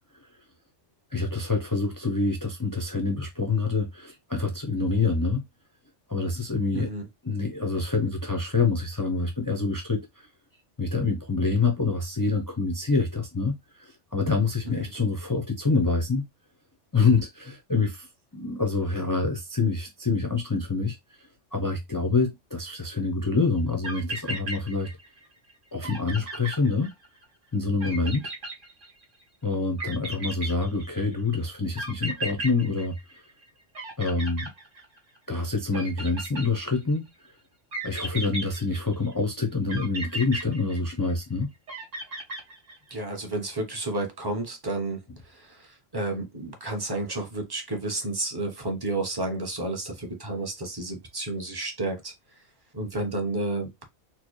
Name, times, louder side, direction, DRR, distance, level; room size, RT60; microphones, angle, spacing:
voice 1, 1.1-5.4 6.1-6.9 7.2-10.1 10.8-16.3 16.9-18.1 18.3-21.0 21.5-24.9 25.7-26.9 27.5-28.3 29.4-33.0 34.0-34.5 35.3-37.1 37.8-41.5, left 4 dB, 25° left, 0.5 m, -26 dB
voice 2, 6.7-7.0 28.0-28.1 42.9-52.1 52.7-53.9, right 2 dB, 20° right, 0.8 m, -31 dB
sound 1, 23.6-23.7 23.8-25.2 25.5-25.6 25.8-27.2 27.8-29.2 29.8-31.1 31.8-33.4 33.7-35.2 35.7-37.0 37.7-39.1 39.7-41.2 41.7-42.9, right 2 dB, 85° right, 1.7 m, -35 dB
4.4 x 2.0 x 3.0 m
omnidirectional pair, 1.2 m